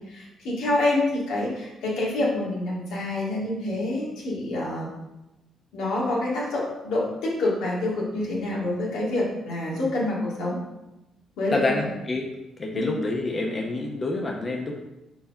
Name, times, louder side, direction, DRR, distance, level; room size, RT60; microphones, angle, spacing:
voice 1, 0.0-4.9 5.7-10.6 11.4-11.8 12.7-12.9, left 2 dB, 90° left, -5 dB, 2.0 m, -27 dB
voice 2, 11.5-12.3 12.6-14.8, left 2 dB, 30° left, 1 dB, 0.8 m, -27 dB
4.6 x 4.2 x 5.3 m, 0.96 s
cardioid pair, 90°, 0 cm